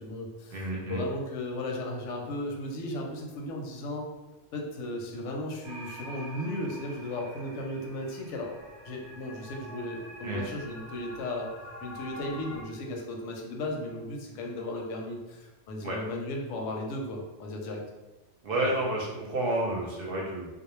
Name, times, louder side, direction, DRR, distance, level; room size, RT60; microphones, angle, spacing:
voice 1, 0.0-4.1 4.5-8.5 8.8-11.5 11.8-17.8 18.6-18.7, left 1 dB, 90° left, 0 dB, 0.9 m, -35 dB
voice 2, 0.5-1.0 10.2-10.4 15.8-16.0 18.4-20.5, right 1 dB, 60° right, -3 dB, 0.7 m, -30 dB
sound 1, 5.6-12.6, equal, 25° right, 0.7 m, -46 dB
2.3 x 2.0 x 3.0 m, 1.1 s
omnidirectional pair, 1.2 m